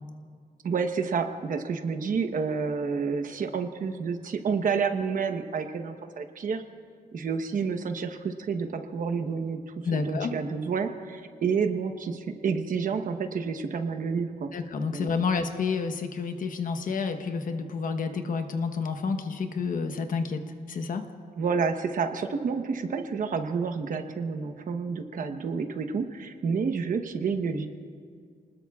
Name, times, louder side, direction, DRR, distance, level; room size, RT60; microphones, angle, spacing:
voice 1, 0.6-6.6 7.1-14.5 14.9-15.3 21.4-27.7, right 5 dB, 60° right, 7 dB, 1.0 m, -29 dB
voice 2, 9.8-10.3 14.5-20.4 20.7-21.0, left 5 dB, 60° left, 7 dB, 1.0 m, -29 dB
29.0 x 20.0 x 2.4 m, 2.1 s
wide cardioid pair, 175°, 16 cm